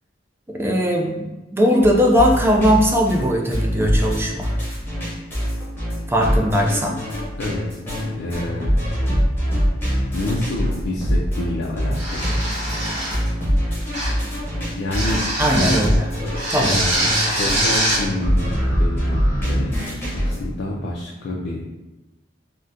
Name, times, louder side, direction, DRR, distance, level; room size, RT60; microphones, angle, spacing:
voice 1, 0.5-1.1 1.5-4.5 6.1-7.0 15.4-16.1 16.5-16.8, equal, 15° right, 0 dB, 0.4 m, -19 dB
sound 1, 1.8-20.4, equal, 10° left, 1.0 m, -24 dB
voice 2, 7.4-8.8 10.1-12.3 14.7-15.2 15.5-15.8 16.2-17.0 17.3-21.6, left 1 dB, 70° left, -4 dB, 0.4 m, -28 dB
sound 2, 11.9-13.3 13.9-14.3 14.9-15.9 16.3-18.0, right 1 dB, 35° right, 1.1 m, -23 dB
3.6 x 2.1 x 2.7 m, 1.0 s
head